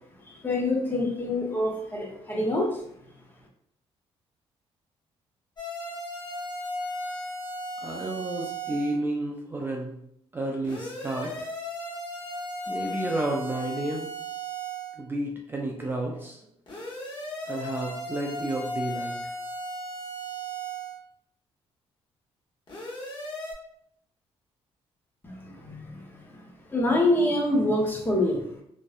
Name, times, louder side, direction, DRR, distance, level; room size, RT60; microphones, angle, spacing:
voice 1, 0.3-2.8 25.2-26.4 26.7-28.4, left 1 dB, 20° left, -1 dB, 0.6 m, -26 dB
sound 1, 5.6-9.0 10.6-15.0 16.7-21.0 22.7-23.5, equal, 45° left, 0.9 m, -36 dB
voice 2, 7.8-10.0 10.3-11.5 12.7-14.1 15.0-16.4 17.5-19.2, right 2 dB, 20° right, -1 dB, 0.3 m, -31 dB
2.6 x 2.1 x 2.3 m, 0.72 s
cardioid pair, 100°, 11 cm